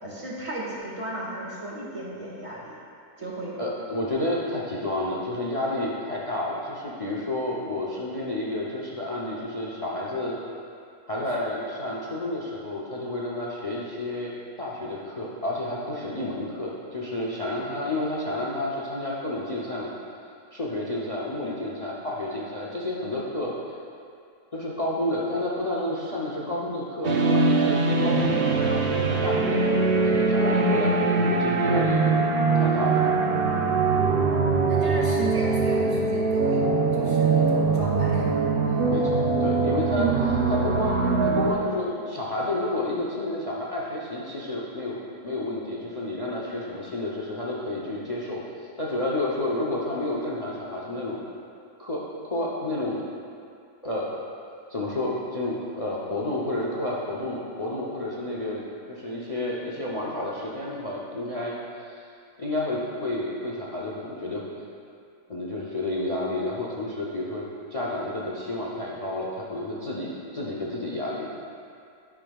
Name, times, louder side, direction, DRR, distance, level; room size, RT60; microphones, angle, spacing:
voice 1, 0.0-2.7 3.2-3.5 34.7-38.3 38.7-38.8, right 1 dB, 20° right, -6 dB, 1.5 m, -35 dB
voice 2, 3.6-10.4 11.1-14.3 14.6-19.9 20.5-23.5 24.5-29.8 30.1-32.0 32.6-33.0 38.9-48.4 48.8-51.2 51.8-53.0 53.8-54.2 54.7-62.0 62.4-64.4 65.3-67.4 67.7-71.3, left 1 dB, 50° left, -4 dB, 0.4 m, -30 dB
sound 1, 27.0-41.5, right 3 dB, 85° right, 0.5 m, -22 dB
12.0 x 6.1 x 2.3 m, 2.4 s
omnidirectional pair, 1.8 m